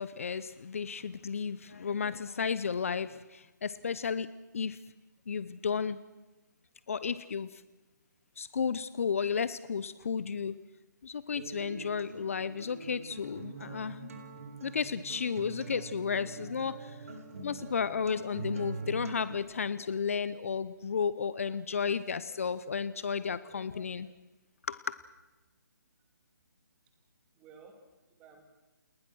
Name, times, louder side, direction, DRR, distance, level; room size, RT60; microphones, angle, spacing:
voice 1, 0.0-4.3 4.5-4.8 5.3-6.0 6.9-7.6 8.4-10.5 11.0-14.2 14.6-24.1 24.7-24.9, left 6 dB, 45° left, 16 dB, 0.8 m, -33 dB
Acoustic guitar, 11.4-19.3, right 3 dB, 45° right, 4.0 m, -43 dB
voice 2, 27.3-28.4, right 5 dB, 10° right, 5 dB, 2.5 m, -57 dB
29.0 x 20.0 x 6.3 m, 1.1 s
hypercardioid pair, 170°, 11 cm